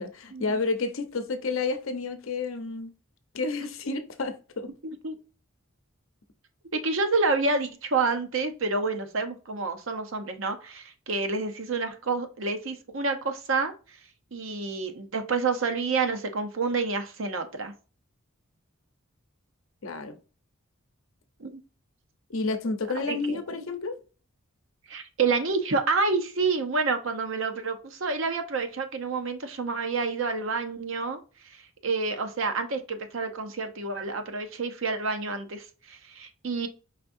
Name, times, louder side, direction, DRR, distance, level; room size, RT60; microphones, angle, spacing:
voice 1, 0.0-2.9 3.3-4.7 19.8-20.2 22.3-24.0, left 3 dB, 65° left, 0.7 m, -30 dB
voice 2, 4.8-5.2 6.7-13.7 14.3-17.7 21.4-21.6 23.1-23.4 24.9-31.2 31.8-36.7, right 4 dB, 65° right, 0.7 m, -28 dB
5.0 x 3.4 x 2.6 m
head